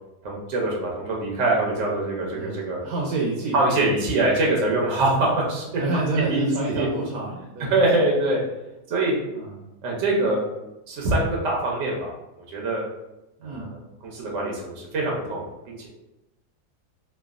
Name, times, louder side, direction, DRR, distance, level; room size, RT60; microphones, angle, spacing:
voice 1, 0.2-2.8 3.5-5.7 6.3-6.5 6.7-6.9 7.7-8.4 8.9-9.1 9.8-10.4 10.9-12.1 12.5-12.8 13.4-15.9, right 2 dB, 60° right, -2 dB, 0.8 m, -24 dB
voice 2, 2.3-3.6 5.8-7.8 9.3-9.6 13.4-13.7, right 3 dB, 80° right, -3 dB, 1.1 m, -28 dB
3.1 x 2.2 x 2.3 m, 0.97 s
omnidirectional pair, 1.8 m